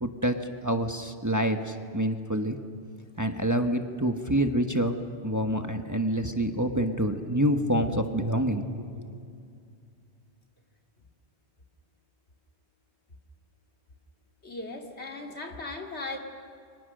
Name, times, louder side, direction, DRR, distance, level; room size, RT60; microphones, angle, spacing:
voice 1, 0.0-2.6 3.2-5.0 5.2-9.0, right 1 dB, 15° right, 5 dB, 1.2 m, -27 dB
voice 2, 14.4-16.2, left 2 dB, 75° left, 2 dB, 2.7 m, -37 dB
30.0 x 24.5 x 6.6 m, 2.4 s
omnidirectional pair, 1.1 m